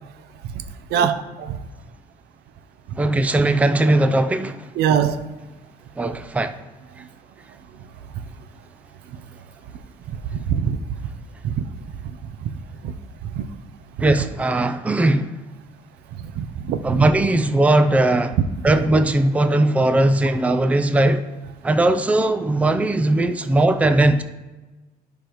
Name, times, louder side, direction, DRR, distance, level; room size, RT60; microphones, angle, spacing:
voice 1, 0.9-1.6 4.8-5.2 10.3-10.8 11.4-11.6 12.8-12.9 13.4-13.5 16.4-17.1, right 8 dB, 75° right, 0.6 m, -22 dB
voice 2, 3.0-4.6 6.0-6.6 14.0-15.3 16.8-18.3 18.6-21.2 21.6-24.2, right 2 dB, 10° right, 0.4 m, -19 dB
12.5 x 5.1 x 3.0 m
cardioid pair, 110°, 17 cm